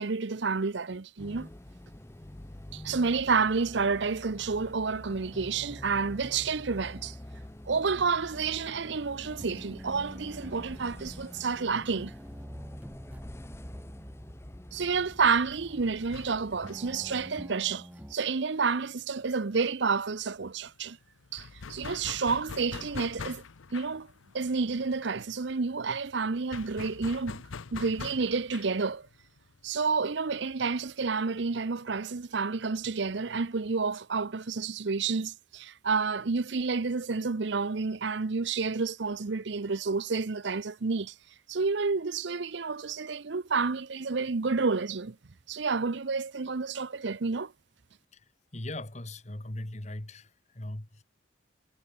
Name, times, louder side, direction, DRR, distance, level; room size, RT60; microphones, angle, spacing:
voice 1, 0.0-1.5 2.7-7.2 7.7-12.1 14.7-21.0 21.3-23.4 23.7-24.1 24.3-27.4 27.7-29.1 29.6-41.1 41.5-45.2 45.5-47.5, right 4 dB, 65° right, 0.7 m, -30 dB
sound 1, 1.2-17.3, left 1 dB, 15° left, 0.5 m, -47 dB
sound 2, 5.3-18.2, equal, 10° right, 1.9 m, -48 dB
sound 3, 16.0-19.4 19.7-19.8 20.1-31.1, left 5 dB, 85° left, 0.7 m, -45 dB
voice 2, 48.1-51.0, left 1 dB, 35° left, 1.7 m, -40 dB
head